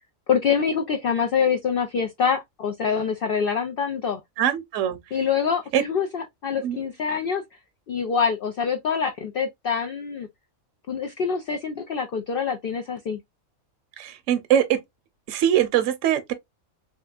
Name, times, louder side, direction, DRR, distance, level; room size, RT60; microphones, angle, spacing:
voice 1, 0.3-4.2 5.1-7.4 7.9-10.3 10.9-13.2, left 6 dB, 80° left, 0.5 m, -25 dB
voice 2, 4.4-5.0 5.7-5.8 6.6-6.8 14.0-14.8 15.3-16.3, right 10 dB, 70° right, 0.9 m, -22 dB
3.3 x 2.8 x 2.3 m
omnidirectional pair, 1.5 m